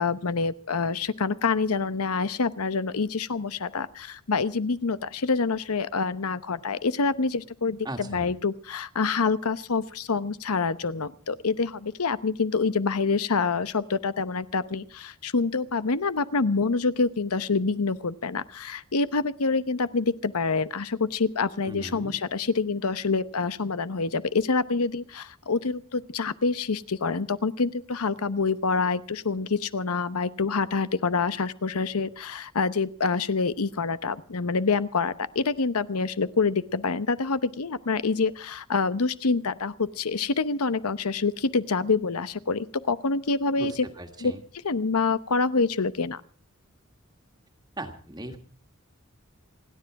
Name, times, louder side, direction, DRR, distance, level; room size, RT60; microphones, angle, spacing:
voice 1, 0.0-43.9 44.2-44.3 44.6-46.2, left 4 dB, 90° left, 14 dB, 0.9 m, -26 dB
voice 2, 7.9-8.3 21.7-22.2 43.6-44.4 47.8-48.4, right 1 dB, 20° right, 5 dB, 1.7 m, -38 dB
28.5 x 10.0 x 4.7 m, 0.43 s
head